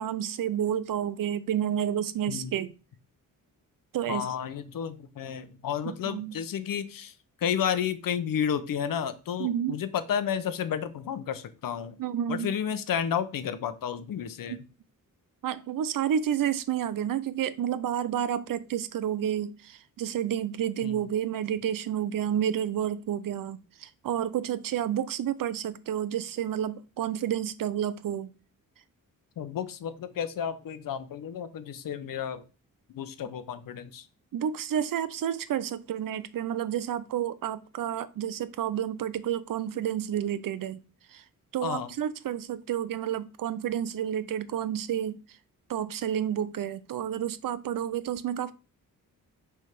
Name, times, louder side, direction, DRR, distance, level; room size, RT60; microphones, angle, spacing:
voice 1, 0.0-2.7 3.9-4.3 5.9-6.4 9.4-9.7 12.0-12.5 14.5-14.6 15.4-28.3 34.3-40.8 41.1-41.2 41.5-45.2 45.7-48.5, right 10 dB, 75° right, 0.7 m, -30 dB
voice 2, 4.1-7.1 7.4-12.0 12.3-14.6 20.8-21.0 29.4-32.4 32.9-34.1 41.6-41.9, left 8 dB, 75° left, 0.9 m, -31 dB
6.1 x 3.6 x 5.9 m
cardioid pair, 110°, 34 cm